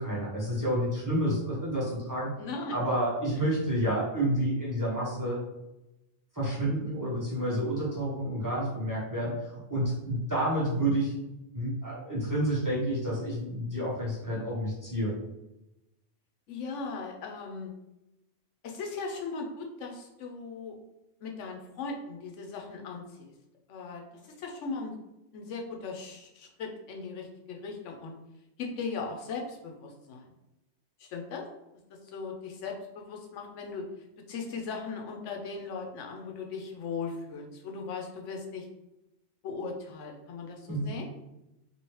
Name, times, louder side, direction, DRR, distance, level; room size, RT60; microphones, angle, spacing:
voice 1, 0.0-2.3 2.7-5.4 6.3-11.1 11.5-15.1 40.7-40.9, right 1 dB, 20° right, -7 dB, 0.8 m, -29 dB
voice 2, 2.4-2.8 16.5-17.7 18.6-20.7 21.2-23.3 23.7-24.9 25.3-28.1 28.6-30.3 31.0-31.5 32.1-33.9 34.3-38.7 39.4-41.1, left 4 dB, 90° left, 1 dB, 1.0 m, -38 dB
3.0 x 2.7 x 3.0 m, 0.93 s
omnidirectional pair, 1.2 m